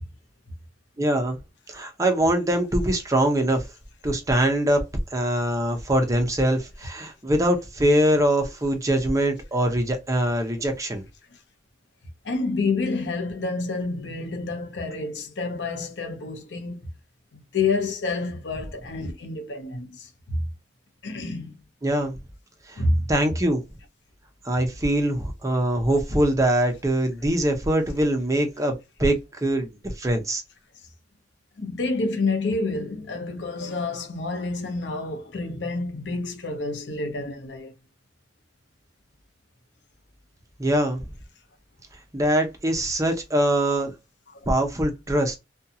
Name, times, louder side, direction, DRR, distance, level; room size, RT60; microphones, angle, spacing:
voice 1, 1.0-1.4 1.7-3.7 4.0-4.8 5.1-11.0 21.8-22.2 22.7-22.8 23.1-23.6 24.4-30.4 40.6-41.1 42.1-43.9 44.5-45.4, right 1 dB, 20° right, 0.7 m, -23 dB
voice 2, 12.2-16.9 17.3-20.4 21.0-21.5 22.8-23.1 31.6-37.7 44.3-44.5, left 3 dB, 75° left, 0.7 m, -28 dB
2.6 x 2.3 x 2.6 m
head